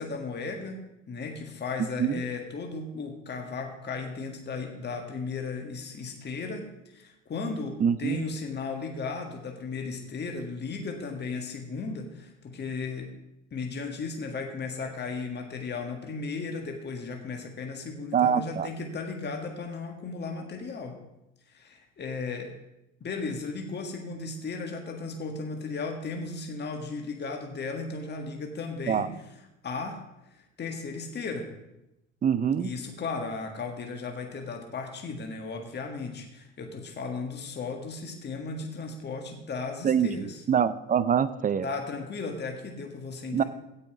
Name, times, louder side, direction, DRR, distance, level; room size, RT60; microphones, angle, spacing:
voice 1, 0.0-13.1 13.5-21.0 21.5-22.5 23.0-29.1 29.6-30.0 30.3-31.5 32.6-40.4 41.6-43.4, left 4 dB, 25° left, 3 dB, 1.7 m, -35 dB
voice 2, 7.8-8.2 18.1-18.7 28.9-29.1 32.2-32.7 39.8-41.7 43.3-43.4, right 8 dB, 20° right, 16 dB, 0.5 m, -25 dB
16.0 x 5.6 x 4.8 m, 0.90 s
figure-of-eight pair, 65°, 39 cm